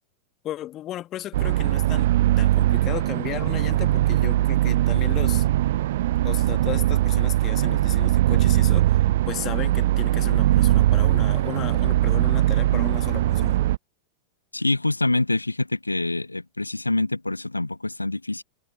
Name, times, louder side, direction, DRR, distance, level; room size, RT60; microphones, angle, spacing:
voice 1, 0.4-2.1 2.4-5.5 6.2-13.6, left 13 dB, 30° left, 2.2 m, -35 dB
sound 1, 1.3-13.8, right 14 dB, 55° right, 0.6 m, -21 dB
voice 2, 14.5-18.4, left 2 dB, 85° left, 0.7 m, -25 dB
figure-of-eight pair, 90°, 0 cm